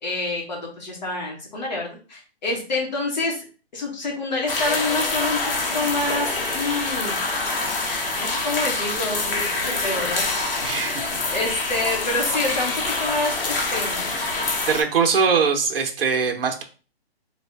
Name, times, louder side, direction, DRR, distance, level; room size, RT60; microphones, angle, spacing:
voice 1, 0.0-3.4 3.7-5.4 5.7-7.2 8.2-10.2 11.3-12.7 13.0-14.1, left 2 dB, 45° left, -1 dB, 1.3 m, -27 dB
sound 1, 4.5-14.8, left 3 dB, 60° left, 0.9 m, -26 dB
voice 2, 10.6-11.2 14.7-16.6, right 5 dB, 60° right, 3 dB, 0.8 m, -22 dB
3.4 x 2.5 x 3.3 m, 0.37 s
hypercardioid pair, 175°, 32 cm